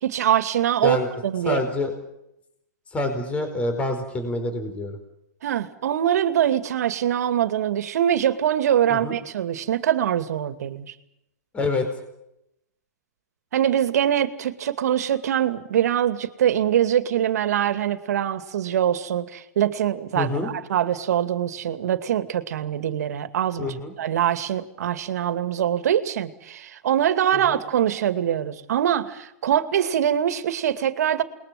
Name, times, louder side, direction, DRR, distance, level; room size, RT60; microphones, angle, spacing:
voice 1, 0.0-1.0 1.2-1.6 5.4-10.9 13.5-23.7 24.0-31.2, right 10 dB, 70° right, 12 dB, 2.4 m, -23 dB
voice 2, 1.4-2.0 2.9-5.0 8.9-9.2 11.5-11.9 20.1-20.5 23.6-23.9 27.3-27.6, left 2 dB, 15° left, 7 dB, 4.7 m, -26 dB
29.0 x 21.0 x 7.7 m, 0.82 s
hypercardioid pair, 140°, 9 cm